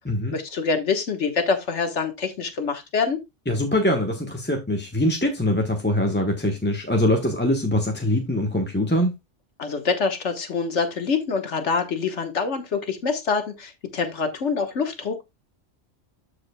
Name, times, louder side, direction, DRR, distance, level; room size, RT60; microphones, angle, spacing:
voice 1, 0.3-3.2 9.6-15.2, left 5 dB, 70° left, 1.6 m, -25 dB
voice 2, 3.5-9.1, left 1 dB, 10° left, 0.9 m, -23 dB
13.5 x 4.9 x 2.2 m
omnidirectional pair, 1.2 m